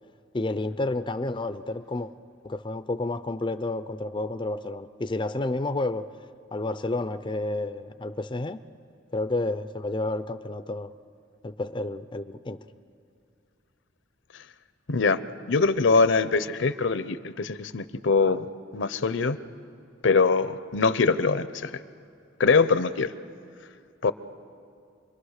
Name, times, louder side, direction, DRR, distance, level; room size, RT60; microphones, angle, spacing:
voice 1, 0.3-2.1 2.4-6.1 6.5-8.6 9.1-10.9 11.4-12.6, left 2 dB, 25° left, 10 dB, 0.5 m, -30 dB
voice 2, 14.9-15.2 15.5-18.4 18.7-19.4 20.0-21.7 22.4-23.1 24.0-24.1, left 4 dB, 65° left, 14 dB, 0.7 m, -23 dB
27.5 x 22.5 x 6.5 m, 2.4 s
head